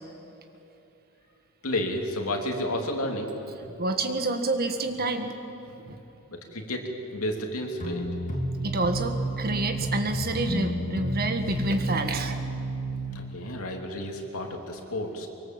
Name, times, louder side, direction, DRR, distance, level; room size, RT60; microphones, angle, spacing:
voice 1, 1.6-3.3 6.3-8.1 13.1-15.3, left 1 dB, 70° left, 2 dB, 3.1 m, -31 dB
voice 2, 3.8-5.3 5.9-6.0 8.6-12.5, right 2 dB, 45° right, 6 dB, 1.8 m, -28 dB
sound 1, 7.8-13.1, right 1 dB, 35° left, 2.8 m, -31 dB
24.0 x 24.0 x 7.8 m, 2.9 s
head